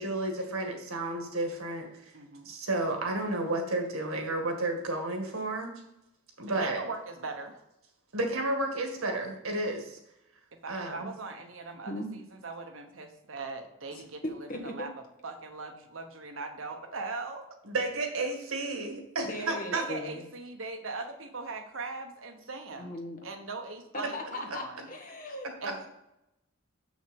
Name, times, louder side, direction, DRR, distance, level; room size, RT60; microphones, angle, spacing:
voice 1, 0.0-2.1 2.5-5.7 6.4-6.8 8.1-10.0 10.7-11.1 17.6-19.8, right 2 dB, 85° right, 3 dB, 1.9 m, -32 dB
voice 2, 2.1-2.5 6.6-7.6 10.6-14.2 14.6-14.9 15.2-17.4 19.4-22.9 23.2-24.8 25.6-25.9, right 3 dB, 70° right, 5 dB, 1.1 m, -40 dB
voice 3, 13.9-14.9 19.3-20.3 22.7-23.2 23.9-25.5, left 1 dB, 40° left, 2 dB, 1.5 m, -38 dB
6.8 x 6.3 x 5.3 m, 0.87 s
head